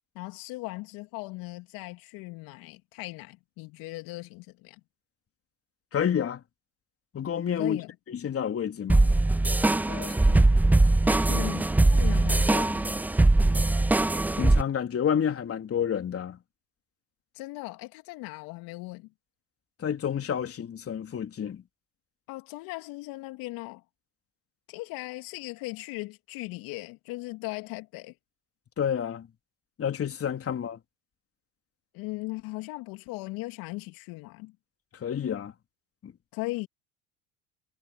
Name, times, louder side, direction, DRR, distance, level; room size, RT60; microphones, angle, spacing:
voice 1, 0.1-4.8 7.6-7.9 9.9-10.6 11.0-13.0 17.3-19.1 22.3-23.8 24.7-28.1 31.9-34.5 36.3-36.7, left 22 dB, 65° left, 2.8 m, -38 dB
voice 2, 5.9-6.4 7.1-7.8 8.1-9.2 13.5-13.7 14.4-16.4 19.8-21.6 28.8-29.3 29.8-30.8 34.9-35.5 36.0-36.1, left 8 dB, 35° left, 3.4 m, -29 dB
sound 1, 8.9-14.6, right 2 dB, 5° right, 0.4 m, -21 dB
hypercardioid pair, 70°, 38 cm